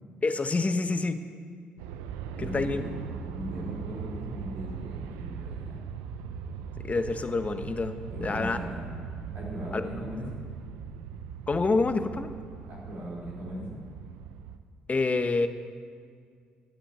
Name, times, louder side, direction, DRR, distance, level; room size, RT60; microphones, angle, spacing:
voice 1, 0.2-1.2 2.4-2.8 6.8-7.9 8.2-8.6 9.7-9.9 11.5-12.3 14.9-15.5, left 3 dB, 35° left, 9 dB, 1.2 m, -27 dB
Aircraft, 1.8-14.6, right 7 dB, 90° right, 0.6 m, -40 dB
voice 2, 2.3-5.8 8.1-8.9 9.3-10.3 12.7-13.8, equal, 70° right, -6 dB, 4.6 m, -38 dB
13.0 x 8.6 x 9.2 m, 2.1 s
supercardioid pair, 60°, 4 cm